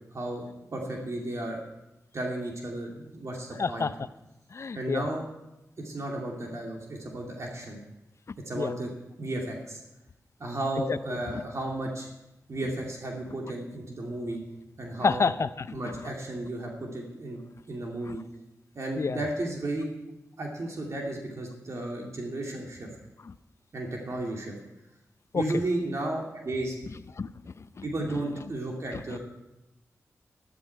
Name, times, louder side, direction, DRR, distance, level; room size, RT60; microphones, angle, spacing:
voice 1, 0.1-1.6 2.1-3.9 4.7-5.2 5.8-7.8 8.5-8.9 9.2-9.8 10.4-12.1 12.5-14.4 14.8-15.3 15.7-17.4 17.7-18.2 18.7-19.8 20.4-22.9 23.7-24.5 25.3-26.8 27.8-29.2, right 1 dB, 60° right, -1 dB, 2.5 m, -33 dB
voice 2, 3.6-3.9 4.5-5.0 8.6-8.7 10.9-11.0 11.3-11.4 15.0-15.9 18.1-18.2 19.0-19.2 23.2-23.3 25.3-25.4 27.2-27.9 28.9-29.2, left 5 dB, 55° left, 14 dB, 0.6 m, -29 dB
13.0 x 11.5 x 4.6 m, 0.92 s
cardioid pair, 55°, 6 cm